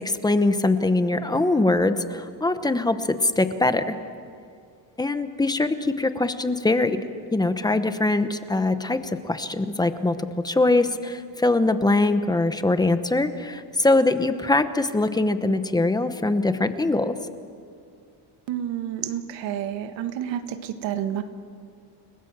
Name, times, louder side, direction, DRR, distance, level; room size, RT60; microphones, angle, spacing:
voice 1, 0.0-4.0 5.0-7.0 7.3-17.1, left 2 dB, 10° left, 10 dB, 0.9 m, -22 dB
voice 2, 18.5-21.2, right 10 dB, 80° right, 8 dB, 1.7 m, -29 dB
30.0 x 20.0 x 7.4 m, 2.3 s
cardioid pair, 155°, 44 cm